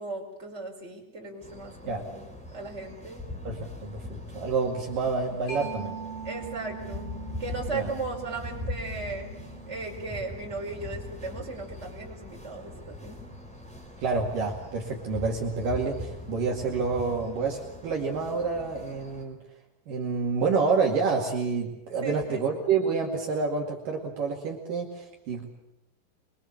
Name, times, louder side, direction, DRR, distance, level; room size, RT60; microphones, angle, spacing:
voice 1, 0.0-2.3 2.5-3.2 6.2-7.1 7.4-9.3 9.7-13.2 22.0-22.5, right 3 dB, 15° right, -1 dB, 5.2 m, -36 dB
sound 1, 1.4-19.2, left 1 dB, ahead, 3.9 m, -41 dB
voice 2, 3.5-6.0 7.7-7.9 14.0-19.4 19.9-25.5, right 4 dB, 60° right, -1 dB, 3.8 m, -28 dB
Mallet percussion, 5.5-12.8, right 6 dB, 60° left, 8.5 m, -43 dB
24.0 x 24.0 x 7.2 m, 0.86 s
omnidirectional pair, 4.5 m